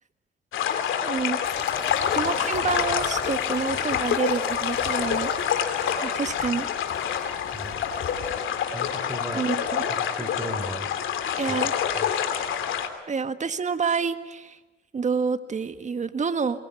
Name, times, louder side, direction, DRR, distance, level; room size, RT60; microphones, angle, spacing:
sound 1, 0.5-12.9, left 8 dB, 80° left, 2.8 m, -27 dB
voice 1, 0.8-1.4 2.1-5.6 6.0-6.7 9.3-9.8 11.4-11.7 13.1-14.6 14.9-16.7, right 5 dB, 35° right, 10 dB, 1.7 m, -28 dB
sound 2, 1.5-8.4, left 6 dB, 55° left, 2.9 m, -38 dB
voice 2, 8.7-9.5 9.9-10.9 11.5-11.6 12.0-12.1, right 1 dB, 10° right, 9 dB, 3.5 m, -36 dB
23.0 x 21.5 x 9.7 m, 1.1 s
cardioid pair, 90°, 20 cm